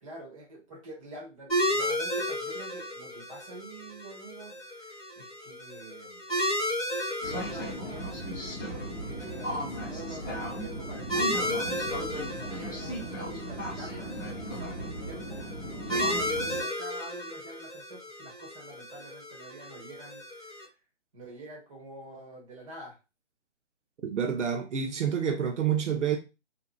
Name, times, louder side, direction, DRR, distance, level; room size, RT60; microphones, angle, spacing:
voice 1, 0.0-6.2 7.2-8.3 8.7-20.6 21.1-23.0, right 2 dB, 30° right, 1.0 m, -46 dB
sound 1, 1.5-20.6, equal, ahead, 1.0 m, -34 dB
sound 2, 7.2-16.6, equal, 15° left, 0.5 m, -36 dB
voice 2, 24.0-26.2, right 8 dB, 80° right, 0.7 m, -28 dB
2.6 x 2.3 x 2.2 m
hypercardioid pair, 155°, 35 cm